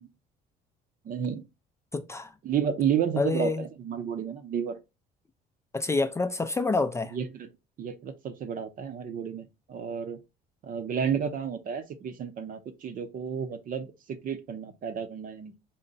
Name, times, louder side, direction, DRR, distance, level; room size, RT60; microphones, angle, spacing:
voice 1, 1.0-1.4 2.4-4.8 7.1-7.5 7.8-10.2 10.6-13.9 14.2-15.6, right 7 dB, 55° right, 0.7 m, -31 dB
voice 2, 1.9-2.3 3.2-3.7 5.7-7.2, left 3 dB, 15° left, 0.4 m, -27 dB
3.8 x 2.1 x 4.0 m
cardioid pair, 110°, 17 cm